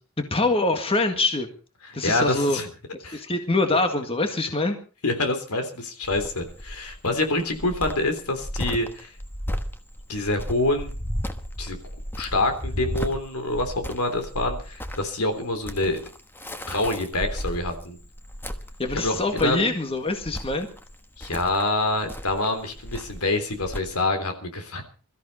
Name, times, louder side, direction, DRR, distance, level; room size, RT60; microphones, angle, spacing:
voice 1, 0.2-1.5 1.9-2.6 3.1-4.8 18.8-20.7, left 2 dB, 25° left, 6 dB, 1.8 m, -24 dB
voice 2, 2.0-2.7 3.0-3.2 5.0-9.1 10.1-10.9 11.6-11.8 12.2-16.0 16.7-18.0 18.9-19.7 21.2-24.8, left 2 dB, 80° left, 7 dB, 3.4 m, -26 dB
Cricket, 6.0-23.8, equal, 10° left, 1.3 m, -35 dB
23.0 x 14.0 x 4.2 m, 0.37 s
head